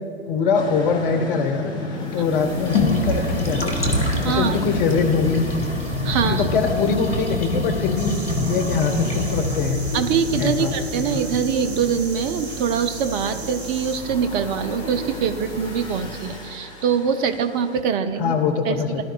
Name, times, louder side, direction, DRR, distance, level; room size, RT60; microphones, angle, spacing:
voice 1, 0.3-1.7 2.1-5.5 6.2-8.2 8.5-9.8 10.4-10.7 18.2-19.0, left 5 dB, 50° left, 5 dB, 1.2 m, -23 dB
sound 1, 0.5-17.8, left 2 dB, 15° left, 1.5 m, -37 dB
sound 2, 2.1-16.4, left 1 dB, 90° left, 1.8 m, -27 dB
voice 2, 4.2-4.6 6.0-6.5 9.9-18.3 18.7-19.0, right 7 dB, 20° right, 9 dB, 0.3 m, -23 dB
sound 3, 7.9-14.0, right 3 dB, 60° right, 2.2 m, -38 dB
18.5 x 11.0 x 2.4 m, 2.4 s
figure-of-eight pair, 100°, 35 cm